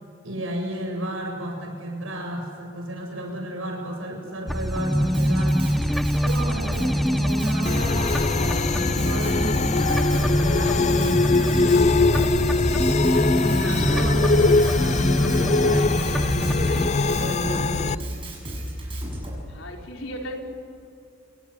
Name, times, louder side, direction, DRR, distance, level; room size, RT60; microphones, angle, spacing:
voice 1, 0.2-5.6 6.2-12.3 12.9-17.9, right 1 dB, 80° right, 2 dB, 7.7 m, -33 dB
sound 1, 4.5-16.9, equal, ahead, 0.8 m, -25 dB
Drum kit, 4.9-19.3, equal, 25° right, 7.7 m, -33 dB
sound 2, 7.7-18.0, left 3 dB, 35° left, 0.5 m, -22 dB
voice 2, 19.5-20.4, equal, 85° left, 1 dB, 4.7 m, -35 dB
28.5 x 22.0 x 8.3 m, 2.5 s
head